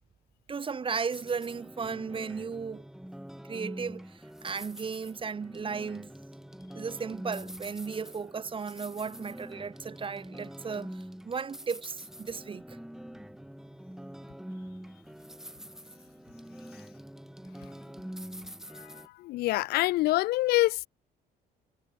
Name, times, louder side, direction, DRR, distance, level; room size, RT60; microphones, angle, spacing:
voice 1, 0.5-2.9 3.5-6.1 6.7-12.8, right 5 dB, 30° right, 6.3 m, -35 dB
sound 1, 1.1-19.1, equal, 5° right, 3.5 m, -45 dB
voice 2, 19.2-20.9, left 18 dB, 70° left, 0.4 m, -25 dB
cardioid pair, 110°, 17 cm